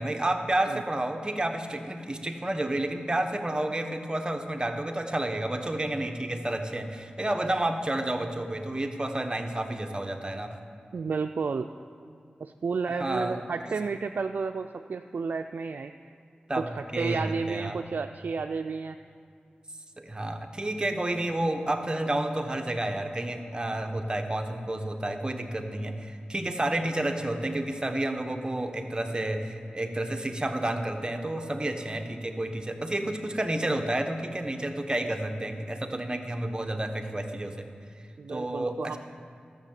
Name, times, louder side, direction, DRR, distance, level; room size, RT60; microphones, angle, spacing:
voice 1, 0.0-10.6 12.9-13.4 13.7-13.8 16.5-17.8 20.0-37.7 38.3-39.0, right 1 dB, 25° right, 5 dB, 1.2 m, -30 dB
voice 2, 10.9-11.7 12.4-16.1 16.7-19.0 38.2-39.0, right 5 dB, 70° right, 7 dB, 0.4 m, -32 dB
13.0 x 6.4 x 7.6 m, 2.3 s
cardioid pair, 40°, 3 cm